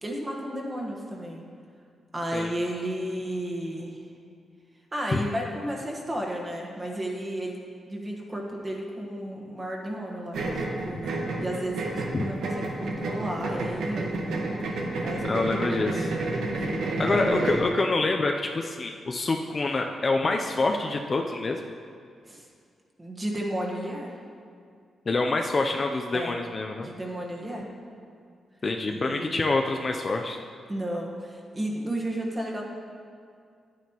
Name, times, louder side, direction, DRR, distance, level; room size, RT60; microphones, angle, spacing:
voice 1, 0.0-1.4 2.1-4.0 4.9-7.6 7.9-14.4 15.0-16.8 22.2-22.5 23.0-24.2 26.1-26.4 26.8-27.7 28.8-29.4 30.7-32.6, right 1 dB, 20° right, -1 dB, 1.2 m, -33 dB
sound 1, 10.3-17.7, right 2 dB, 90° right, 1.2 m, -30 dB
voice 2, 15.2-16.1 17.0-21.6 25.1-26.9 28.6-30.4, left 3 dB, 30° left, 3 dB, 0.4 m, -26 dB
11.0 x 9.1 x 2.9 m, 2.2 s
wide cardioid pair, 140°, 0 cm